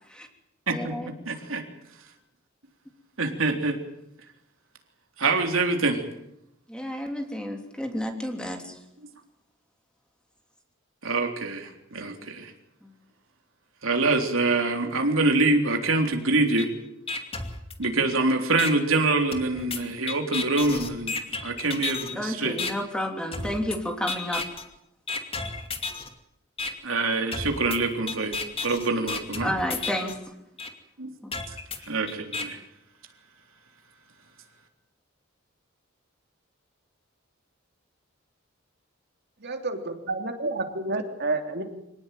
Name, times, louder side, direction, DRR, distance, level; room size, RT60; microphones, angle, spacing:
voice 1, 0.7-1.1 6.7-8.8 19.8-19.9 22.1-24.4 29.4-30.2, equal, 5° left, 4 dB, 3.2 m, -31 dB
voice 2, 1.3-1.6 2.0-2.1 3.2-3.8 5.2-6.0 11.0-12.5 13.8-16.7 17.8-21.1 21.4-22.6 26.8-28.4 28.6-29.5 31.0-31.1 31.5-31.6 31.9-32.6, right 3 dB, 75° right, 4 dB, 3.6 m, -25 dB
sound 1, 16.6-16.7 17.1-18.1 18.6-18.7 19.3-22.1 22.6-22.7 23.3-23.8 24.1-24.6 25.1-26.1 26.6-26.7 27.3-30.1 30.6-30.7 31.3-32.4, left 4 dB, 30° left, 2.5 m, -32 dB
voice 3, 39.4-41.6, right 2 dB, 55° right, 5 dB, 3.2 m, -30 dB
25.5 x 18.5 x 9.2 m, 0.82 s
head